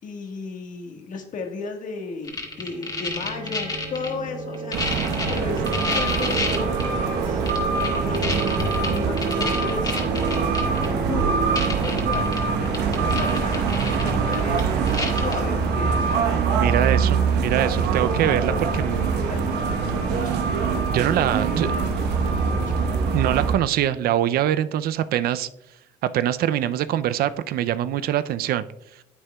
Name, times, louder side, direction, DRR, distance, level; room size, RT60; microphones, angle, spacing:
voice 1, 0.0-4.8 5.3-7.4 7.9-11.4 11.7-14.6 15.1-16.1 17.5-17.9 18.2-20.3 21.2-22.7 23.3-23.5, left 4 dB, 50° left, 4 dB, 1.5 m, -35 dB
sound 1, 2.2-4.1 4.5-6.8 7.5-10.9 11.2-11.3 11.5-12.4 12.6-15.3 15.9-16.0, left 3 dB, 20° left, 1.8 m, -29 dB
sound 2, 2.4-12.0, right 4 dB, 40° right, 1.1 m, -32 dB
sound 3, 4.7-23.5, right 5 dB, 80° right, 1.0 m, -24 dB
voice 2, 16.6-19.1 20.9-21.7 23.1-25.5 26.0-28.6, right 11 dB, 65° right, 14 dB, 0.4 m, -23 dB
9.5 x 8.0 x 2.2 m, 0.84 s
cardioid pair, 110°, 17 cm